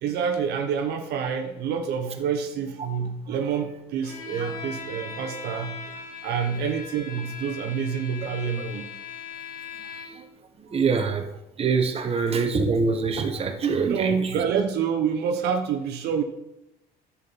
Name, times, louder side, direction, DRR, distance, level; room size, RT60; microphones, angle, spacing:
voice 1, 0.0-5.8 6.2-8.9 13.9-16.2, right 7 dB, 75° right, 5 dB, 1.1 m, -27 dB
Bowed string instrument, 4.0-10.3, left 5 dB, 55° left, 2.7 m, -39 dB
voice 2, 10.7-11.2 11.6-14.2, right 5 dB, 35° right, 5 dB, 1.2 m, -24 dB
10.5 x 7.5 x 4.2 m, 0.91 s
cardioid pair, 110°, 17 cm